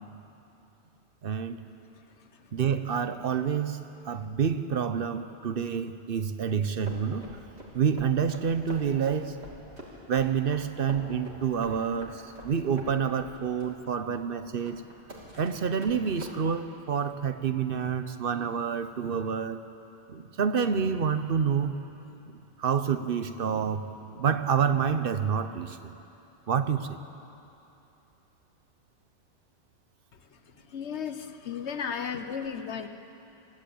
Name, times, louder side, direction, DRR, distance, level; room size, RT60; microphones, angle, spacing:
voice 1, 1.2-1.6 2.5-7.3 7.7-9.4 10.1-14.8 15.4-19.6 20.1-21.7 22.3-25.9 26.5-27.0, right 7 dB, 60° right, 10 dB, 1.0 m, -28 dB
sound 1, 6.8-16.3, right 1 dB, 80° right, 3.3 m, -46 dB
voice 2, 30.7-32.9, left 7 dB, 90° left, 9 dB, 1.3 m, -34 dB
22.5 x 14.5 x 8.5 m, 2.9 s
omnidirectional pair, 1.1 m